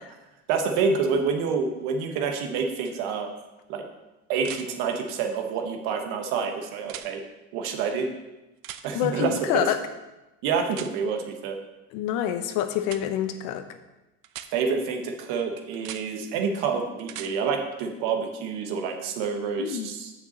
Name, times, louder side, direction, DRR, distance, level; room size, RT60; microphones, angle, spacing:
voice 1, 0.5-3.3 3.7-3.8 4.3-7.2 7.5-8.1 8.8-9.7 10.4-11.6 14.5-20.1, right 5 dB, 85° right, 4 dB, 1.4 m, -27 dB
sound 1, 2.8-2.9 4.4-4.7 6.8-7.1 8.6-8.8 10.7-10.9 12.8-13.0 14.2-14.5 15.7-16.0 17.0-17.3 19.4-19.5, right 12 dB, 65° right, 0.7 m, -39 dB
voice 2, 8.9-9.8 11.9-13.6 19.6-19.9, left 10 dB, 75° left, 8 dB, 1.0 m, -26 dB
6.6 x 6.0 x 7.1 m, 1.0 s
cardioid pair, 180°, 34 cm